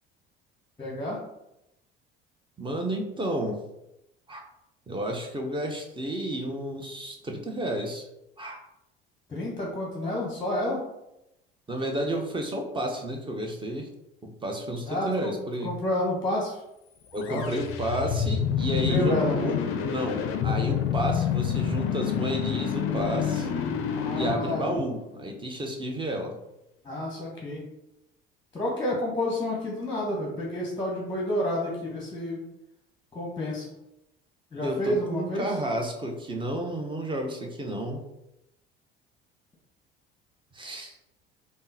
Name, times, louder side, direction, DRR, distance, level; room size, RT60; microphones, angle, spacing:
voice 1, 0.8-1.2 9.3-10.8 14.9-15.3 15.6-16.6 17.3-17.4 18.7-19.4 23.9-24.7 26.8-27.6 28.5-32.4 33.1-33.7 34.5-35.5, left 1 dB, 15° left, -2 dB, 0.8 m, -29 dB
voice 2, 2.6-3.6 4.3-4.4 4.9-8.1 8.4-8.6 11.7-13.9 14.2-15.7 17.1-19.6 19.9-23.5 24.1-26.4 34.6-38.0 40.5-41.0, right 1 dB, 15° right, 2 dB, 0.6 m, -31 dB
sound 1, 17.2-25.3, left 8 dB, 50° left, 0.4 m, -28 dB
3.5 x 2.1 x 2.6 m, 0.87 s
hypercardioid pair, 60°, 29 cm